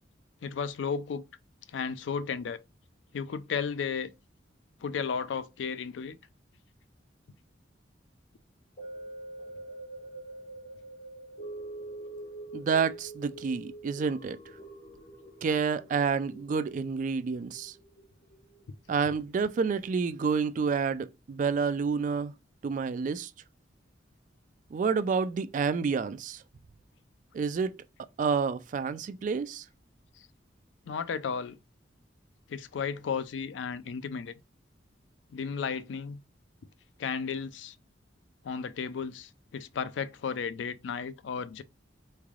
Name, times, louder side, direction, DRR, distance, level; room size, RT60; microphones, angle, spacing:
voice 1, 0.4-1.2 1.7-2.6 3.1-4.1 4.8-6.2 30.2-30.3 30.9-31.6 32.5-34.3 35.3-36.2 37.0-37.8 38.4-41.6, left 6 dB, 75° left, 0.4 m, -34 dB
sound 1, 8.8-19.1 19.6-19.7, right 2 dB, 60° left, 1.8 m, -45 dB
voice 2, 12.5-14.4 15.4-17.7 18.9-22.3 22.6-23.3 24.7-26.4 27.3-27.8 28.2-29.6, right 5 dB, 45° right, 0.3 m, -29 dB
3.6 x 3.2 x 2.4 m
head